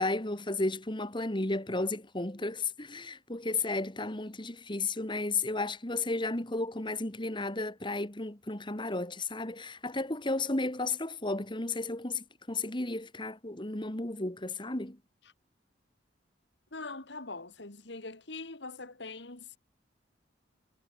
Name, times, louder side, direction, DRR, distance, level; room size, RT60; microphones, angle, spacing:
voice 1, 0.0-15.0, left 2 dB, 25° left, 2.1 m, -33 dB
voice 2, 16.7-19.6, left 3 dB, 65° left, 2.4 m, -42 dB
head